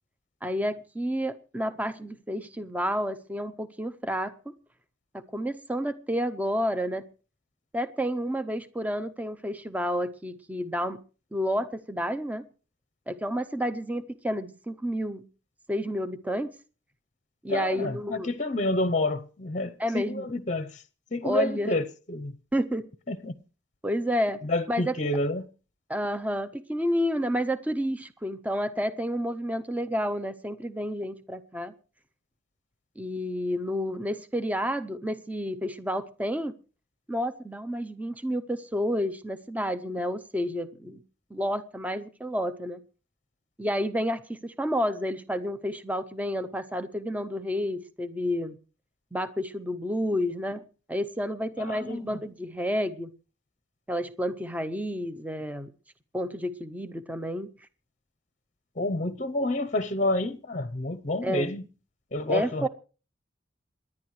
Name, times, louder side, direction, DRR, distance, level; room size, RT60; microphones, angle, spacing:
voice 1, 0.4-4.3 5.1-7.0 7.7-11.0 11.3-12.5 13.1-15.2 15.7-16.5 17.4-18.3 19.8-20.3 21.2-21.7 22.5-22.9 23.8-24.4 24.7-25.0 25.9-31.7 33.0-36.5 37.1-41.0 41.3-42.8 43.6-48.5 49.1-50.6 50.9-53.1 53.9-55.7 56.1-57.5 61.2-61.5 62.3-62.7, equal, 10° right, 0.6 m, -30 dB
voice 2, 17.5-20.8 21.1-22.4 23.1-23.3 24.4-25.5 51.6-52.2 58.8-61.6 62.1-62.7, left 2 dB, 40° left, 0.7 m, -29 dB
27.5 x 10.5 x 3.2 m
head